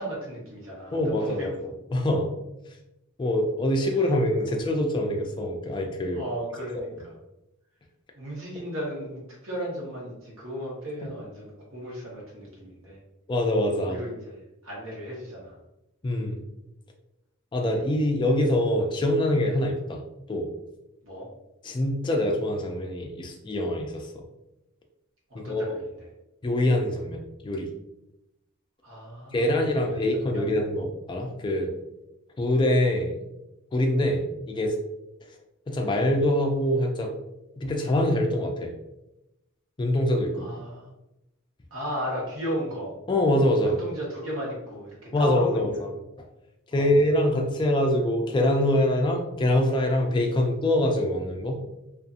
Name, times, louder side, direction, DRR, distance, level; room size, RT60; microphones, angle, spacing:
voice 1, 0.0-1.6 3.9-4.0 4.5-4.6 6.1-7.1 8.1-13.0 13.8-15.6 21.0-21.3 25.3-25.9 28.8-30.5 40.3-40.9 41.7-43.0 43.6-45.8 46.7-47.0, equal, 65° right, -4 dB, 1.1 m, -35 dB
voice 2, 0.9-2.3 3.2-6.2 6.7-6.8 13.3-14.0 16.0-16.4 17.5-20.0 20.3-20.5 21.6-24.2 25.3-25.6 26.4-27.7 29.3-31.7 32.4-33.2 33.7-34.8 35.7-37.1 37.6-38.7 39.8-40.4 43.1-43.8 45.1-45.9 46.7-51.6, left 1 dB, 20° left, 2 dB, 0.3 m, -24 dB
2.6 x 2.4 x 2.4 m, 0.91 s
head